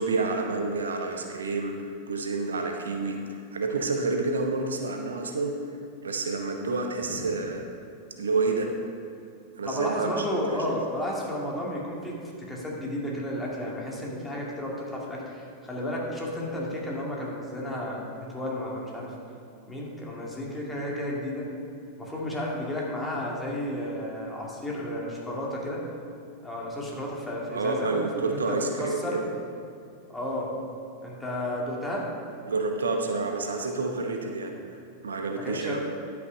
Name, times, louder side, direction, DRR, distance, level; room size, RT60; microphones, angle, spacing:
voice 1, 0.0-5.6 6.0-7.7 8.2-8.7 9.6-10.2 10.5-10.6 27.5-29.3 32.5-34.6 35.0-35.8, right 3 dB, 70° right, 3 dB, 0.8 m, -29 dB
voice 2, 9.6-19.1 19.7-21.5 22.0-25.8 26.4-29.2 30.1-30.5 31.0-32.1 35.4-35.9, left 1 dB, 10° left, -4 dB, 2.3 m, -32 dB
11.0 x 6.0 x 5.2 m, 2.5 s
figure-of-eight pair, 90°, 0 cm